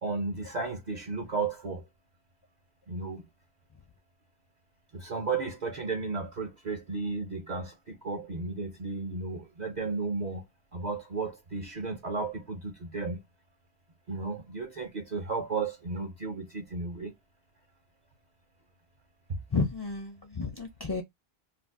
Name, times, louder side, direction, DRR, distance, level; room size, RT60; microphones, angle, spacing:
voice 1, 0.0-1.8 2.9-3.2 4.9-10.4 10.7-13.2 14.1-17.1 19.3-19.4, right 4 dB, 50° right, 0.6 m, -34 dB
voice 2, 19.5-21.0, left 4 dB, 35° left, 0.4 m, -31 dB
2.5 x 2.3 x 3.4 m
omnidirectional pair, 1.1 m